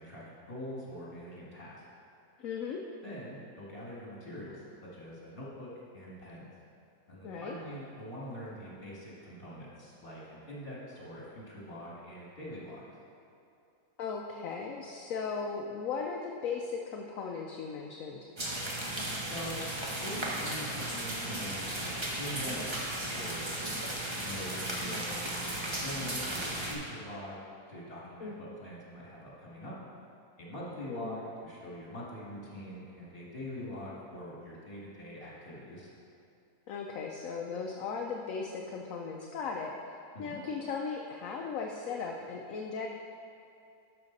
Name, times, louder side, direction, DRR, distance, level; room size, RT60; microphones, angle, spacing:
voice 1, 0.0-1.8 3.0-6.5 7.1-12.8 19.3-19.6 20.0-23.6 24.2-29.8 30.4-35.9 40.1-40.4, equal, 35° left, -6 dB, 2.3 m, -44 dB
voice 2, 2.4-2.8 7.2-7.6 14.0-18.3 28.2-28.4 30.9-31.2 33.6-33.8 36.7-39.7 40.2-42.9, left 5 dB, 70° left, 1 dB, 1.0 m, -37 dB
sound 1, 18.4-26.7, right 1 dB, 20° right, 1.0 m, -35 dB
12.5 x 5.7 x 4.0 m, 2.6 s
omnidirectional pair, 1.6 m